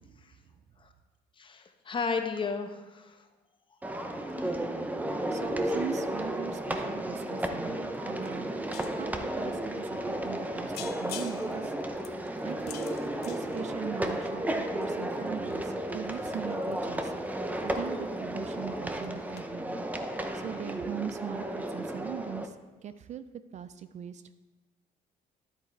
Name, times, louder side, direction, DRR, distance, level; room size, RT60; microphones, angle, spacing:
voice 1, 1.4-3.2 4.3-4.6, left 4 dB, 30° left, 7 dB, 0.9 m, -33 dB
sound 1, 3.8-22.5, right 1 dB, 10° right, 0.7 m, -33 dB
voice 2, 5.3-8.5 9.0-11.7 12.4-13.0 13.2-17.1 17.6-19.8 20.3-22.5 22.8-23.2 23.5-24.4, right 9 dB, 45° right, 12 dB, 0.4 m, -40 dB
sound 2, 7.9-8.0 8.2-9.2 9.8-9.9 10.3-10.5 10.7-14.3 14.8-18.2 18.4-18.8 19.0-19.1 19.4-19.5, left 11 dB, 75° left, 0.6 m, -47 dB
10.0 x 8.5 x 3.3 m, 1.2 s
cardioid pair, 110°, 17 cm